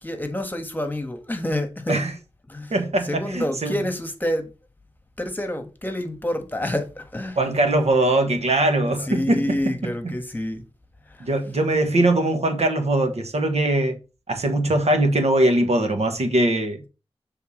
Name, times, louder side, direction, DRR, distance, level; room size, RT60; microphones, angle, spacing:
voice 1, 0.0-2.0 2.5-2.7 3.0-4.5 5.2-7.4 8.9-10.6 11.1-11.3, left 1 dB, 15° left, 1.3 m, -28 dB
voice 2, 2.7-3.7 7.4-9.4 11.2-14.0 14.3-16.8, right 1 dB, 85° right, 1.3 m, -21 dB
7.0 x 3.5 x 4.9 m
wide cardioid pair, 65°, 11 cm